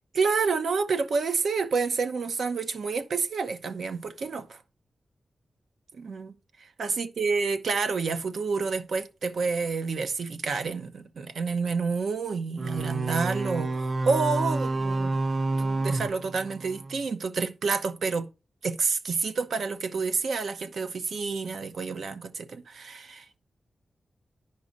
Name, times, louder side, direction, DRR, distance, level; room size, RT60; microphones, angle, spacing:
voice 1, 0.1-4.6 5.9-6.3 6.8-15.2 15.6-18.3 18.6-23.4, right 4 dB, 75° right, 0.7 m, -29 dB
sound 1, 12.6-17.0, right 2 dB, 40° right, 0.4 m, -29 dB
9.6 x 5.3 x 3.9 m
wide cardioid pair, 125°, 0 cm